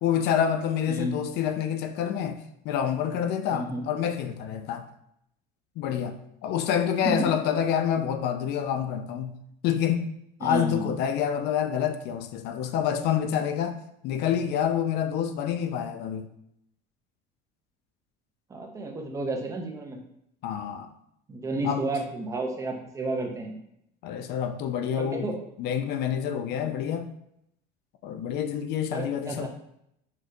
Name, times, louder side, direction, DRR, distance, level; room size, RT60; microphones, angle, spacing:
voice 1, 0.0-4.9 5.8-9.4 9.6-10.1 10.4-16.3 20.4-20.9 21.6-21.8 24.0-25.3 25.6-27.1 28.0-29.5, left 9 dB, 50° left, 8 dB, 0.4 m, -27 dB
voice 2, 3.5-3.9 7.0-7.3 10.4-10.9 18.5-20.0 21.3-23.6 25.0-25.4 26.6-26.8 28.9-29.5, right 2 dB, 15° right, 2 dB, 0.5 m, -31 dB
4.1 x 3.1 x 2.6 m, 0.76 s
cardioid pair, 150°, 21 cm